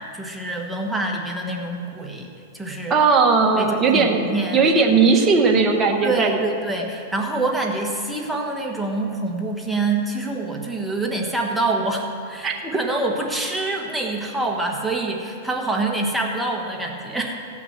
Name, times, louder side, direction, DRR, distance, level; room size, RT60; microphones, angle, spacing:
voice 1, 0.1-2.3 2.5-3.0 3.6-4.6 6.0-17.4, right 2 dB, 5° right, 0 dB, 1.4 m, -26 dB
voice 2, 2.9-6.4 12.4-12.5, right 4 dB, 20° right, 1 dB, 1.4 m, -18 dB
17.0 x 5.9 x 7.4 m, 2.5 s
hypercardioid pair, 130°, 0 cm